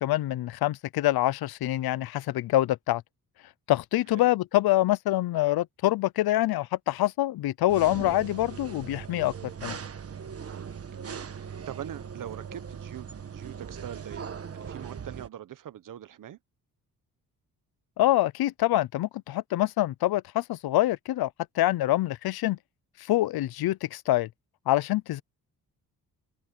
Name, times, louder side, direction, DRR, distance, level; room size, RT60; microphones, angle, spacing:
voice 1, 0.0-3.0 3.7-9.3 9.6-9.8 18.0-21.3 21.6-22.6 23.1-24.3 24.7-25.2, left 15 dB, 90° left, 0.6 m, -25 dB
sound 1, 7.7-15.3, right 7 dB, 40° right, 1.4 m, -40 dB
voice 2, 10.4-14.3 14.5-16.4, right 10 dB, 60° right, 0.8 m, -43 dB
cardioid pair, 115°, 36 cm